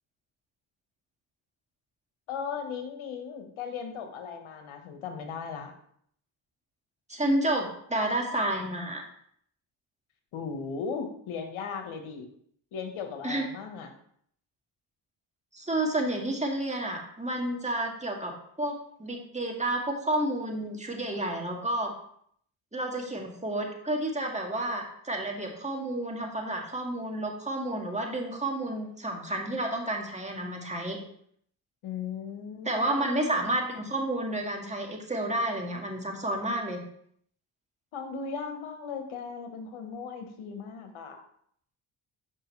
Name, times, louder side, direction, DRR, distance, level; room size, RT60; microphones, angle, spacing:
voice 1, 2.3-5.7 10.3-12.3 12.7-13.9 31.8-33.4 37.9-41.2, left 6 dB, 75° left, 5 dB, 1.4 m, -37 dB
voice 2, 7.1-9.0 13.2-13.4 15.5-18.3 18.6-18.7 19.0-21.9 22.7-31.0 32.7-36.8, right 1 dB, 15° right, 0 dB, 1.9 m, -30 dB
7.5 x 5.4 x 3.3 m, 0.65 s
supercardioid pair, 60°, 49 cm